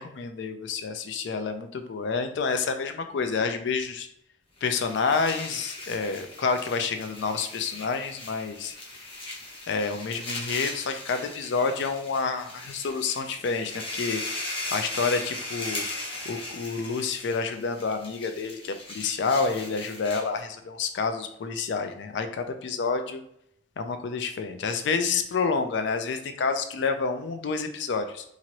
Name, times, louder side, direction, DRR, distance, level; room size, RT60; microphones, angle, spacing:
voice 1, 0.0-4.1 4.6-8.7 9.7-15.8 16.2-23.2 23.8-28.2, left 4 dB, 70° left, 7 dB, 0.4 m, -29 dB
sound 1, 4.6-20.4, left 2 dB, 30° left, 0.8 m, -38 dB
2.9 x 2.6 x 2.8 m, 0.72 s
head